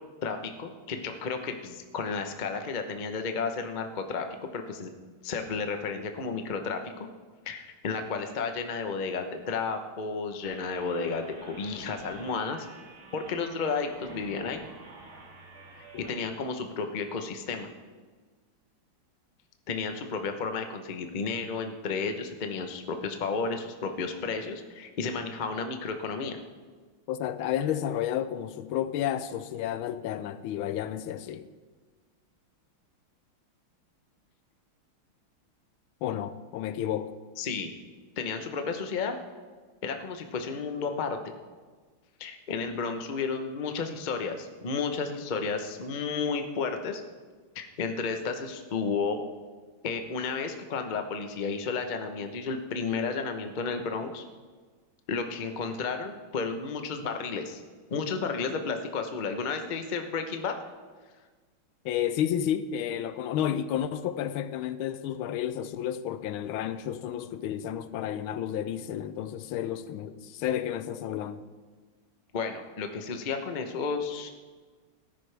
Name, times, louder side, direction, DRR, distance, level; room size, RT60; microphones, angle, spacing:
voice 1, 0.2-4.3 4.5-4.9 5.2-7.1 7.5-12.6 13.1-14.6 16.1-17.7 19.7-26.4 37.4-37.7 38.2-39.2 39.8-41.2 42.2-47.0 47.5-49.2 49.8-54.2 55.1-57.6 57.9-60.5 72.3-74.3, left 5 dB, 60° left, 0.4 m, -32 dB
sound 1, 10.4-16.3, right 2 dB, 35° right, 2.1 m, -49 dB
voice 2, 27.1-31.5 36.0-37.1 61.8-71.4, left 10 dB, 80° left, 1.4 m, -31 dB
18.0 x 10.0 x 3.4 m
omnidirectional pair, 2.3 m